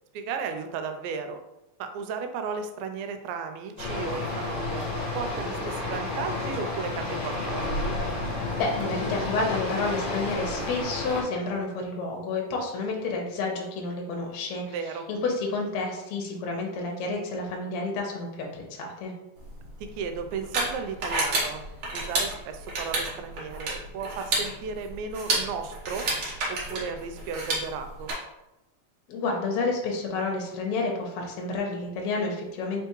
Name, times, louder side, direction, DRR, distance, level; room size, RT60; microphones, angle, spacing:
voice 1, 0.1-1.4 1.8-4.9 5.1-7.8 14.7-15.1 19.8-21.6 21.9-26.1 26.5-28.1, right 5 dB, 85° right, 7 dB, 2.4 m, -35 dB
sound 1, 3.8-11.2, left 2 dB, 45° left, 1.4 m, -31 dB
voice 2, 8.6-14.6 15.1-19.1 29.1-32.8, left 3 dB, 70° left, 0 dB, 1.8 m, -30 dB
sound 2, 19.4-28.1, right 2 dB, 60° right, 1.5 m, -31 dB
5.0 x 3.4 x 3.0 m, 0.93 s
omnidirectional pair, 4.1 m